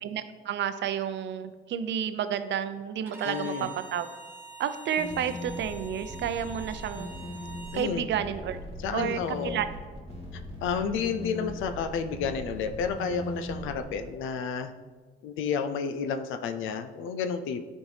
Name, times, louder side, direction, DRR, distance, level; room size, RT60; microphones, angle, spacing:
voice 1, 0.0-4.1 4.6-7.1 7.7-8.6 8.9-9.7, right 9 dB, 65° right, 11 dB, 0.5 m, -31 dB
Bowed string instrument, 3.1-7.9, right 3 dB, 10° right, 1.3 m, -45 dB
voice 2, 3.2-3.7 7.7-8.1 8.8-9.6 10.3-14.7 15.2-17.6, left 6 dB, 85° left, 9 dB, 0.5 m, -31 dB
sound 1, 4.9-13.8, left 1 dB, 30° left, 2.1 m, -40 dB
9.7 x 4.4 x 3.3 m, 1.4 s
cardioid pair, 90°, 20 cm